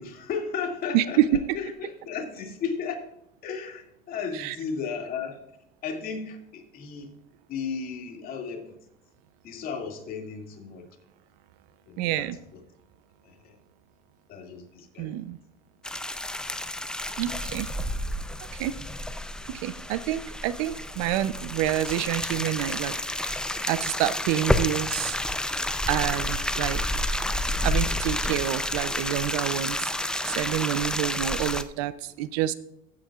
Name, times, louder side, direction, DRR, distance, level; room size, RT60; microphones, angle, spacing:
voice 1, 0.0-1.2 1.5-3.1 3.4-5.4 5.8-7.1 7.5-8.8 9.4-10.9 11.9-12.3 13.2-13.6 14.3-15.2, left 6 dB, 50° left, 2 dB, 2.4 m, -34 dB
voice 2, 0.9-1.4 4.3-4.6 12.0-12.4 15.0-15.4 17.2-17.7 18.6-18.8 19.5-23.4 23.7-25.2 25.9-27.1 27.6-32.5, right 13 dB, 75° right, 15 dB, 0.7 m, -28 dB
sound 1, 15.8-31.6, left 1 dB, 5° left, 0.5 m, -30 dB
15.5 x 8.5 x 2.4 m, 0.80 s
supercardioid pair, 115°, 20 cm